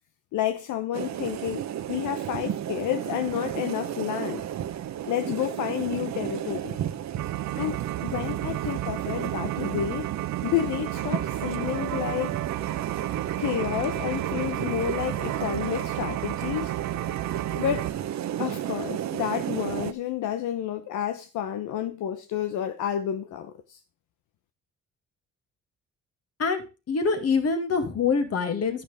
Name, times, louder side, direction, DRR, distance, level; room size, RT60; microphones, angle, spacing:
voice 1, 0.3-4.4 5.0-6.8 7.6-10.1 10.4-12.4 13.4-16.7 17.5-17.9 18.4-23.8, left 11 dB, 85° left, 1.0 m, -30 dB
sound 1, 0.9-19.9, right 11 dB, 65° right, 1.0 m, -33 dB
sound 2, 7.2-17.9, right 15 dB, 80° right, 0.7 m, -33 dB
voice 2, 26.4-28.8, left 5 dB, 55° left, 2.6 m, -25 dB
10.5 x 10.5 x 3.5 m
cardioid pair, 90°, 30 cm